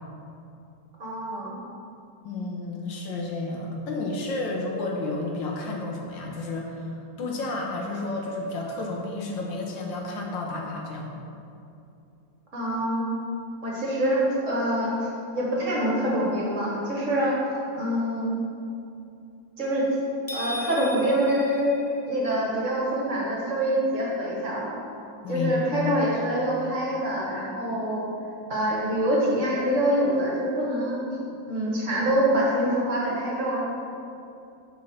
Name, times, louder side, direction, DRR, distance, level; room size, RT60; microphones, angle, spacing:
voice 1, 1.0-1.5 12.5-13.1 13.6-18.4 19.6-19.9 20.3-21.7 22.1-24.8 25.3-28.1 28.5-31.0 31.5-33.6, right 1 dB, 45° right, -4 dB, 1.7 m, -25 dB
voice 2, 2.2-11.1 25.2-25.9, left 2 dB, 85° left, 0 dB, 1.8 m, -31 dB
sound 1, 20.3-22.5, left 1 dB, 25° left, 0.6 m, -38 dB
7.3 x 4.6 x 6.4 m, 2.7 s
omnidirectional pair, 2.0 m